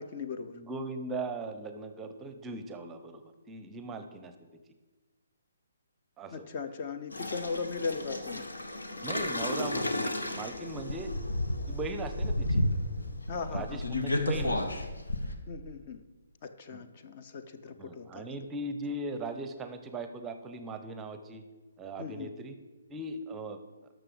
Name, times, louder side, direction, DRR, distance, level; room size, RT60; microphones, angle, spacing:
voice 1, 0.0-0.6 6.3-8.5 13.3-13.8 15.5-16.0 16.4-18.2 22.0-22.3, left 5 dB, 35° left, 9 dB, 0.6 m, -38 dB
voice 2, 0.5-3.2 3.5-4.3 6.2-6.5 9.0-11.1 11.7-12.6 13.5-14.6 16.7-16.8 17.8-21.4 21.8-22.6 22.9-23.6, right 2 dB, 10° right, 8 dB, 0.7 m, -39 dB
sound 1, 7.1-15.3, left 1 dB, 75° left, 1.2 m, -32 dB
12.5 x 6.4 x 5.1 m, 1.2 s
figure-of-eight pair, 135°, 0 cm